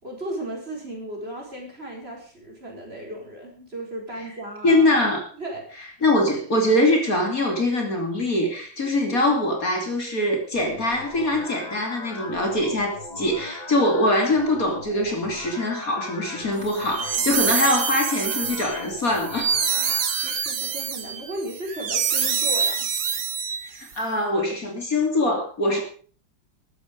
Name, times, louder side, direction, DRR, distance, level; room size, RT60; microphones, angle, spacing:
voice 1, 0.0-4.9 5.3-6.1 16.5-17.3 19.8-22.9 25.7-25.8, right 1 dB, 30° right, 0 dB, 5.0 m, -36 dB
voice 2, 4.6-5.3 6.0-19.5 23.6-25.8, left 1 dB, 45° left, 2 dB, 3.3 m, -23 dB
sound 1, 10.5-20.5, left 2 dB, 25° left, 1.5 m, -39 dB
sound 2, 16.7-23.9, right 7 dB, 65° right, 2.2 m, -26 dB
14.0 x 13.0 x 5.3 m, 0.42 s
omnidirectional pair, 2.1 m